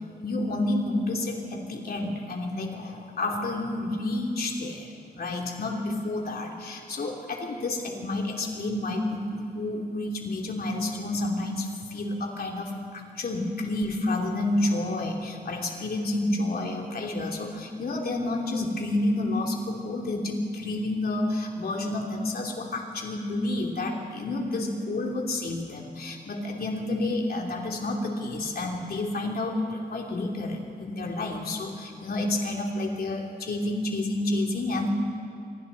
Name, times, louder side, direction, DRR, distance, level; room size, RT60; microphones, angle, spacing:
voice 1, 0.2-4.9 5.2-34.9, left 2 dB, 60° left, 0 dB, 3.1 m, -30 dB
28.0 x 23.0 x 4.2 m, 2.6 s
wide cardioid pair, 105°, 18 cm